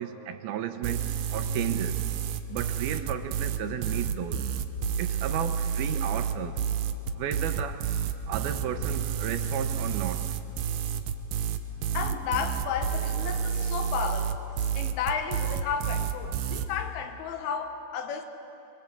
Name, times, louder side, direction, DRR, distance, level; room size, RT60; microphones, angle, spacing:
voice 1, 0.0-2.0 2.5-4.4 5.0-6.6 7.1-7.8 8.3-10.3, right 10 dB, 90° right, 8 dB, 2.9 m, -34 dB
sound 1, 0.8-16.7, right 8 dB, 70° right, 2.4 m, -29 dB
sound 2, 11.6-16.0, right 1 dB, 25° left, 2.0 m, -50 dB
voice 2, 11.9-14.5 14.7-18.3, left 6 dB, 85° left, 6 dB, 3.2 m, -33 dB
25.0 x 21.5 x 8.3 m, 2.8 s
omnidirectional pair, 4.3 m